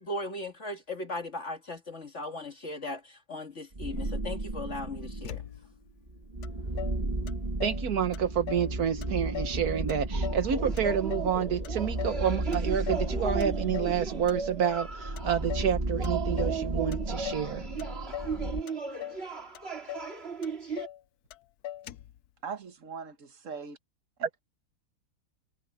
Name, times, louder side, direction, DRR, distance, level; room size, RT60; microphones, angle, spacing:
voice 1, 0.0-5.4, left 2 dB, 50° left, 2.1 m, -38 dB
sound 1, 3.7-5.5 6.1-18.6, right 2 dB, 25° right, 1.7 m, -34 dB
Motor vehicle (road), 5.2-5.9 6.4-6.5 6.8-7.9 8.1-8.7 9.0-9.6 9.9-11.4 11.6-12.2 12.5-13.1 13.4-14.0 14.3-14.9 15.2-15.8 16.0-16.6 16.9-17.5 17.8-18.4 18.7-19.3 19.6-19.7 19.9-20.1 20.4-21.0 21.3-21.4 21.6-22.2, left 12 dB, 80° left, 1.1 m, -40 dB
voice 2, 7.6-17.7, right 8 dB, 75° right, 1.6 m, -29 dB
sound 2, 10.1-15.5 16.0-20.9, right 5 dB, 40° right, 2.7 m, -37 dB
voice 3, 22.4-23.8, right 6 dB, 55° right, 1.7 m, -40 dB
omnidirectional pair, 1.6 m